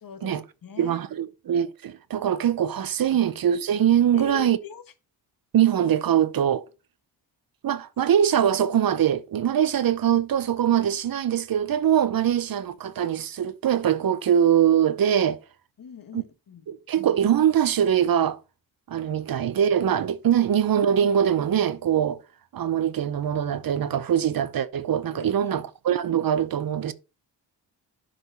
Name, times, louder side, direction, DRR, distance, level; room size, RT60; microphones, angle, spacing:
voice 1, 0.0-0.3 0.6-1.0 4.1-4.8 15.8-16.6 25.1-25.3, left 8 dB, 50° left, 1.2 m, -40 dB
voice 2, 0.8-4.6 5.5-6.7 7.6-15.4 16.1-16.2 16.7-18.4 18.9-22.2 22.5-26.9, right 9 dB, 55° right, 0.8 m, -22 dB
8.2 x 5.2 x 4.5 m
cardioid pair, 70°, 43 cm